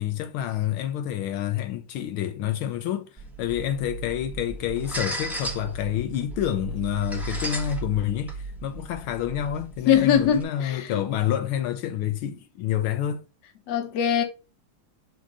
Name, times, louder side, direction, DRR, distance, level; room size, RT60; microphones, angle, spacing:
voice 1, 0.0-13.2, left 11 dB, 80° left, 1.6 m, -28 dB
sound 1, 3.2-10.4, right 2 dB, ahead, 1.1 m, -35 dB
voice 2, 9.9-11.0 13.7-14.2, left 8 dB, 60° left, 1.5 m, -22 dB
6.3 x 2.9 x 5.3 m
omnidirectional pair, 2.3 m